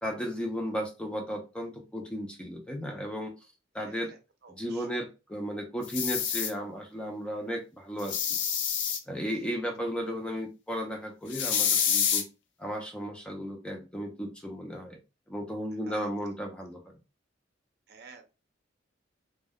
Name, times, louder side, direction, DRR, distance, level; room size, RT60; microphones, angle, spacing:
voice 1, 0.0-3.3 3.7-4.1 4.5-8.4 9.1-12.2 12.6-15.0 15.3-16.8, equal, 5° left, 2 dB, 0.4 m, -35 dB
voice 2, 3.8-4.2 4.4-5.0 15.9-16.1 17.9-18.3, right 5 dB, 60° right, 5 dB, 0.6 m, -51 dB
sound 1, 5.8-6.5 8.0-9.0 11.3-12.2, left 8 dB, 70° left, 0.4 m, -27 dB
2.2 x 2.0 x 3.5 m, 0.29 s
head